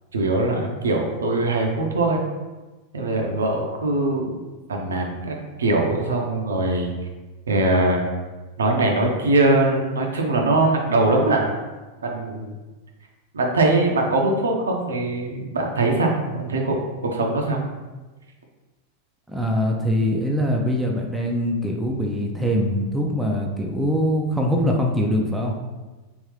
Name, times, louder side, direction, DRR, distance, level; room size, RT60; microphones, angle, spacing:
voice 1, 0.1-2.2 2.9-4.3 4.7-6.9 7.5-8.1 8.6-11.5 12.0-12.5 13.3-16.8 17.1-17.6, right 2 dB, 70° right, 1 dB, 0.6 m, -21 dB
voice 2, 19.3-25.5, equal, 5° right, -1 dB, 0.4 m, -23 dB
3.6 x 2.7 x 3.2 m, 1.2 s
figure-of-eight pair, 90°, 0 cm